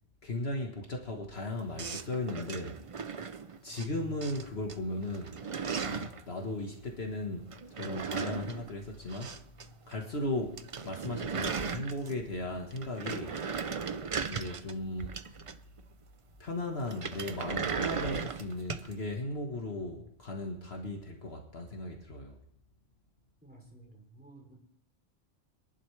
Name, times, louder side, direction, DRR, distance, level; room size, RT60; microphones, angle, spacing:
voice 1, 0.2-2.8 3.6-5.5 5.8-9.3 9.9-13.4 14.2-15.2 16.4-22.4, left 1 dB, 55° left, 1 dB, 1.6 m, -37 dB
sound 1, 1.8-3.9 4.2-4.7 5.0-6.2 7.5-9.7 9.9-10.0 10.3-10.4 10.6-12.3 12.7-15.8 16.9-18.9, right 5 dB, 45° right, 0.4 m, -37 dB
voice 2, 23.4-24.5, right 2 dB, 5° right, 0 dB, 3.1 m, -54 dB
25.5 x 11.0 x 3.3 m, 0.73 s
omnidirectional pair, 1.3 m